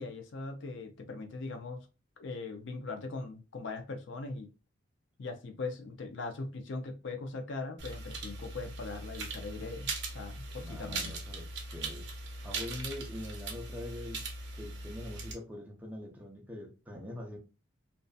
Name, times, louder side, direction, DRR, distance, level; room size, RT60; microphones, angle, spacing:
voice 1, 0.0-1.9 2.2-4.5 5.2-9.9 10.1-11.1, left 3 dB, 65° left, 0.5 m, -40 dB
sound 1, 7.8-15.3, right 3 dB, 55° right, 0.6 m, -40 dB
voice 2, 10.6-12.1 12.4-14.2 14.6-17.4, left 1 dB, 10° right, 0.5 m, -43 dB
2.6 x 2.3 x 2.2 m
head